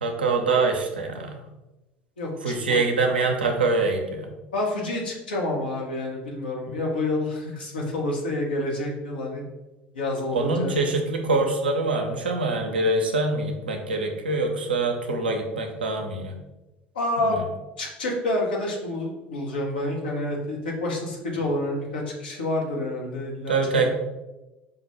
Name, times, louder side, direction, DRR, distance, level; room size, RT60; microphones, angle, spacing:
voice 1, 0.0-1.4 2.4-4.3 10.3-16.4 17.2-17.5 23.5-23.9, right 3 dB, 90° right, 3 dB, 0.5 m, -24 dB
voice 2, 2.2-2.8 4.5-9.4 9.9-10.9 16.9-17.4 17.8-23.6, left 1 dB, 80° left, -1 dB, 0.8 m, -28 dB
4.9 x 2.2 x 2.9 m, 1.0 s
hypercardioid pair, 70°, 5 cm